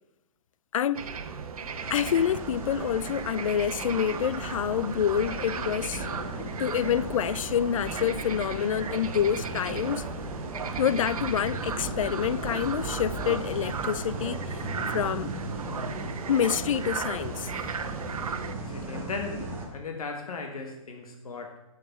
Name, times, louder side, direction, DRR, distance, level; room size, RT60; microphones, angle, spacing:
voice 1, 0.7-1.1 1.9-6.0 6.4-10.1 10.8-14.6 14.9-15.3 16.3-17.5, left 9 dB, 65° left, 0.4 m, -27 dB
sound 1, 0.9-18.5, right 5 dB, 85° right, 1.1 m, -36 dB
sound 2, 1.8-19.7, right 2 dB, 15° right, 1.2 m, -37 dB
voice 2, 18.6-21.6, left 4 dB, 85° left, 1.7 m, -37 dB
9.6 x 6.5 x 6.0 m
hypercardioid pair, 175°, 18 cm